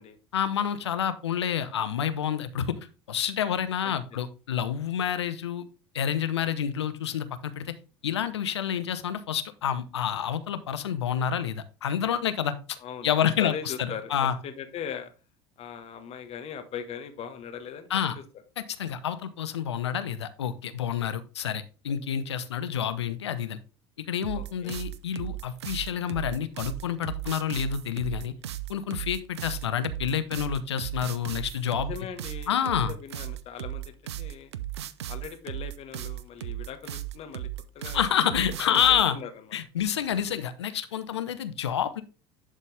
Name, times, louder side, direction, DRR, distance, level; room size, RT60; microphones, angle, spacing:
voice 1, 0.3-2.8 3.1-5.6 5.9-7.7 8.0-12.8 13.0-14.4 17.9-18.2 18.6-23.6 24.1-28.3 28.7-31.9 32.5-32.9 37.9-39.2 39.5-42.0, left 9 dB, 90° left, 12 dB, 0.7 m, -28 dB
voice 2, 13.4-15.1 15.6-17.9 24.3-24.8 31.7-34.5 35.0-37.5 37.7-38.2 38.7-39.3, left 8 dB, 50° left, 7 dB, 1.5 m, -39 dB
Electro beat, 24.2-39.1, right 13 dB, 85° right, 0.5 m, -36 dB
11.0 x 4.2 x 3.4 m, 0.33 s
hypercardioid pair, 75°, 14 cm